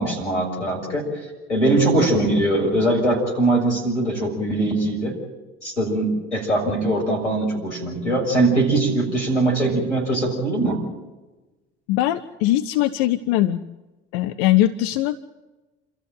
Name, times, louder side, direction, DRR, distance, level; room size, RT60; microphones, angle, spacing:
voice 1, 0.0-5.1 5.6-10.8, right 2 dB, 85° left, 0 dB, 6.4 m, -21 dB
voice 2, 11.9-13.6 14.1-15.2, left 14 dB, 60° left, 13 dB, 0.8 m, -20 dB
28.5 x 14.0 x 9.3 m, 1.1 s
figure-of-eight pair, 60°, 35 cm